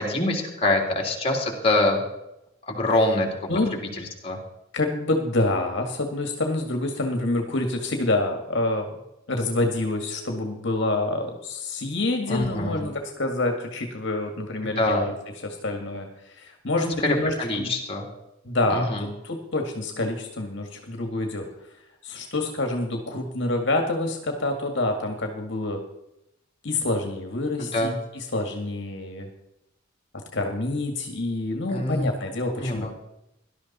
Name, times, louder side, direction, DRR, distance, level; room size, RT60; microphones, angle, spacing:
voice 1, 0.0-2.0 2.7-3.3 4.2-4.4 12.3-12.8 14.6-15.0 16.8-18.0 18.7-19.0 27.6-27.9 31.7-32.1 32.6-32.9, left 1 dB, 30° left, 1 dB, 3.3 m, -24 dB
voice 2, 4.7-8.9 9.3-15.1 15.4-17.7 18.4-21.5 22.0-25.8 26.6-29.3 30.3-32.9, left 2 dB, 60° left, 3 dB, 1.9 m, -27 dB
18.5 x 12.0 x 4.2 m, 0.87 s
head